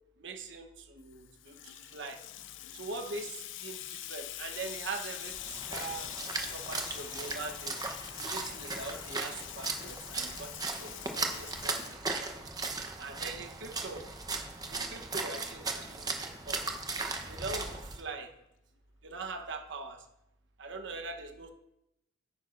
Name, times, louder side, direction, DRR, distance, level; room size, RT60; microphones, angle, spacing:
voice 1, 0.2-2.2 2.7-6.1 6.5-7.8 8.2-12.3 13.0-14.0 14.7-16.6 17.3-18.3 19.0-20.0 20.6-21.5, right 3 dB, 65° right, 6 dB, 1.0 m, -42 dB
Water tap faucet / Sink (filling or washing), 1.1-12.5, left 13 dB, 75° left, 0.4 m, -44 dB
Splash splatter, 5.3-18.0, right 3 dB, 20° right, 0.9 m, -37 dB
10.5 x 9.3 x 2.6 m, 0.86 s
head